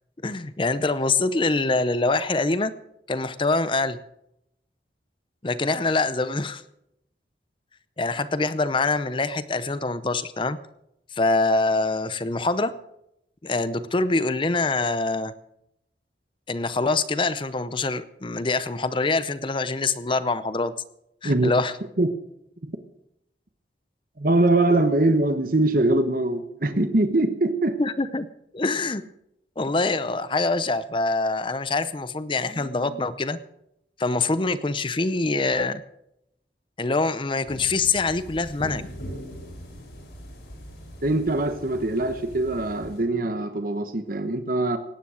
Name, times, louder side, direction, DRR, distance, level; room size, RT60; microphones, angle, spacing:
voice 1, 0.2-2.7 3.1-4.0 5.4-6.6 8.0-10.6 11.1-12.7 13.4-15.3 16.5-20.7 21.2-21.8 27.8-28.3 28.5-29.0 29.6-33.4 34.0-35.8 36.8-38.9, left 3 dB, 30° left, 14 dB, 0.7 m, -24 dB
voice 2, 24.2-27.8 41.0-44.8, right 2 dB, 50° right, 9 dB, 1.1 m, -22 dB
sound 1, 37.5-43.0, equal, 70° left, 5.1 m, -41 dB
18.0 x 9.9 x 6.3 m, 0.79 s
head